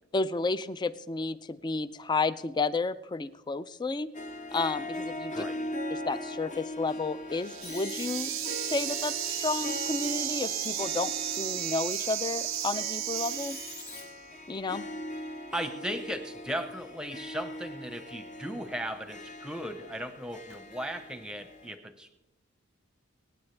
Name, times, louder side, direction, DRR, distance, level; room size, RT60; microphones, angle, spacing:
voice 1, 0.1-4.1 4.5-5.3 5.9-8.3 8.6-13.6 14.5-14.8, left 3 dB, 20° left, 16 dB, 0.3 m, -32 dB
Harp, 4.1-21.7, left 1 dB, 40° left, 0.8 m, -41 dB
voice 2, 5.3-5.7 15.5-22.1, equal, 5° right, 9 dB, 0.8 m, -37 dB
sound 1, 7.4-14.1, right 17 dB, 70° right, 0.3 m, -34 dB
sound 2, 7.6-14.0 17.4-17.5 20.5-20.6, left 4 dB, 70° left, 3.4 m, -43 dB
24.0 x 9.6 x 3.3 m, 0.93 s
head